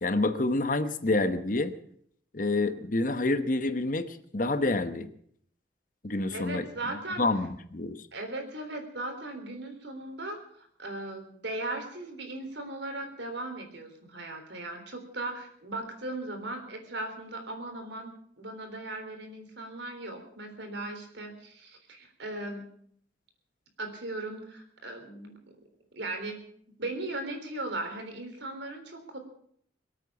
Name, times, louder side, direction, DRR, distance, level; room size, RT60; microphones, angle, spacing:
voice 1, 0.0-1.7 2.3-5.1 6.0-6.6 7.2-8.0, left 2 dB, 45° left, 10 dB, 1.0 m, -28 dB
voice 2, 6.3-7.2 8.1-22.6 23.8-25.4 25.9-26.4 26.8-29.2, right 2 dB, 70° right, 5 dB, 3.6 m, -38 dB
23.5 x 8.7 x 7.1 m, 0.65 s
head